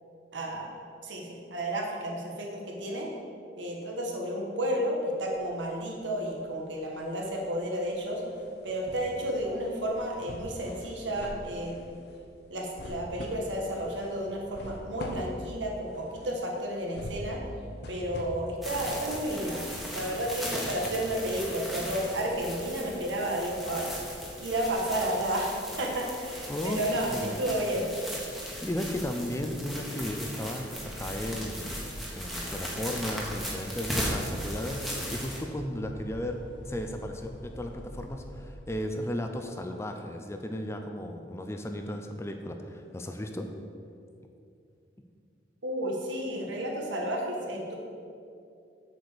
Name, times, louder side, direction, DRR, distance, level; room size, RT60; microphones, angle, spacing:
voice 1, 0.3-0.7 1.0-3.1 3.6-8.2 8.6-11.8 12.5-17.4 17.9-19.6 19.9-23.9 24.4-27.9 45.6-47.7, right 1 dB, 85° right, -1 dB, 1.6 m, -32 dB
sound 1, 5.2-6.4 6.7-20.4 20.8-20.9, left 1 dB, 60° left, 0.8 m, -44 dB
sound 2, 18.6-35.4, equal, ahead, 1.3 m, -37 dB
voice 2, 26.5-26.8 27.1-27.4 28.6-36.4 36.6-43.5, left 1 dB, 15° left, 5 dB, 0.5 m, -35 dB
sound 3, 30.7-38.5, equal, 80° left, 1.7 m, -45 dB
7.7 x 4.9 x 7.1 m, 2.5 s
head